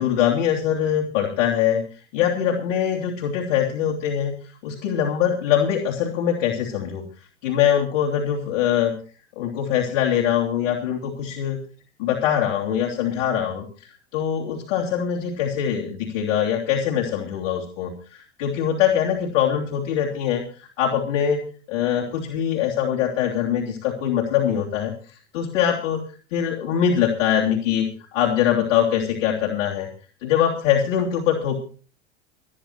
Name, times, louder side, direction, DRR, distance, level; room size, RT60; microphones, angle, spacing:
voice 1, 0.0-1.8 2.1-4.3 4.6-7.0 7.4-8.9 9.4-11.6 12.0-13.6 14.1-21.4 21.7-24.9 25.3-26.0 26.3-29.9 30.2-31.5, left 9 dB, 55° left, -2 dB, 3.1 m, -23 dB
28.0 x 9.9 x 3.0 m, 0.38 s
figure-of-eight pair, 80°, 37 cm